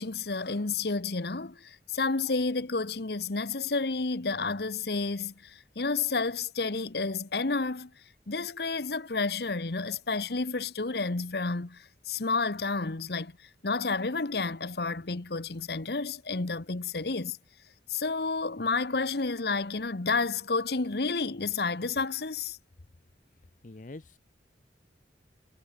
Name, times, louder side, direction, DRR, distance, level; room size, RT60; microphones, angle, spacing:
voice 1, 0.0-7.9 8.3-13.3 13.6-17.4 17.9-22.6, left 4 dB, 60° left, 1.1 m, -30 dB
voice 2, 23.6-24.2, left 2 dB, 45° left, 0.7 m, -44 dB
head